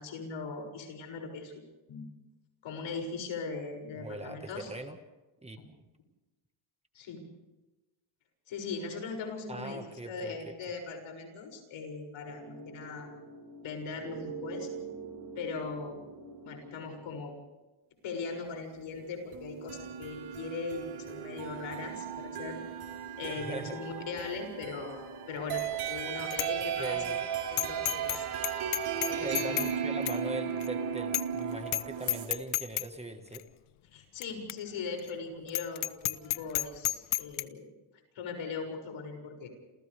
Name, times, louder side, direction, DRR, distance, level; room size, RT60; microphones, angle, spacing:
voice 1, 0.0-2.1 2.6-4.7 5.6-5.7 6.9-7.3 8.5-13.1 13.6-14.7 15.3-16.0 16.4-17.3 18.0-22.6 23.2-27.2 27.5-28.3 29.0-29.5 33.9-37.7 38.1-39.5, left 4 dB, 75° left, 4 dB, 6.8 m, -39 dB
voice 2, 3.9-5.0 5.4-5.6 9.5-10.5 23.4-23.8 26.8-27.2 29.2-33.4, right 2 dB, 15° right, 6 dB, 1.5 m, -40 dB
sound 1, 12.3-17.3, right 4 dB, 60° right, 7.8 m, -45 dB
sound 2, 19.3-32.3, right 8 dB, 85° right, 4.5 m, -36 dB
Bicycle bell, 25.6-25.9 26.3-26.5 26.9-27.0 27.6-28.2 28.4-29.7 30.1-30.2 30.6-30.7 31.1-31.4 31.7-31.8 32.1-32.9 33.3-33.4 34.2-34.3 34.5-34.6 35.0-35.1 35.5-37.4, left 16 dB, 90° left, 1.0 m, -31 dB
29.0 x 28.5 x 3.5 m, 1.1 s
cardioid pair, 145°, 48 cm